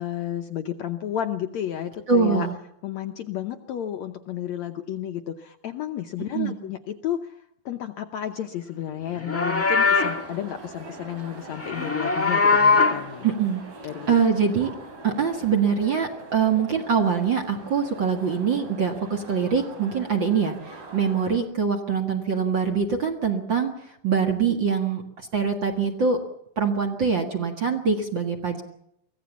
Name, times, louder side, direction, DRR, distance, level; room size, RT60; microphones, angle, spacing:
voice 1, 0.0-2.5 2.8-13.3 13.8-14.2, left 10 dB, 70° left, 6 dB, 1.8 m, -32 dB
voice 2, 2.1-2.5 6.3-6.5 13.2-13.6 14.1-14.7 15.0-23.7 24.0-25.0 25.3-26.2 26.6-28.6, right 6 dB, 45° right, 4 dB, 1.8 m, -23 dB
Livestock farm animals working animals, 9.1-10.2 11.5-13.1, left 4 dB, 10° left, 0.9 m, -21 dB
sound 1, 9.7-21.4, right 3 dB, 85° right, 6.3 m, -43 dB
24.5 x 16.0 x 7.2 m, 0.76 s
omnidirectional pair, 4.0 m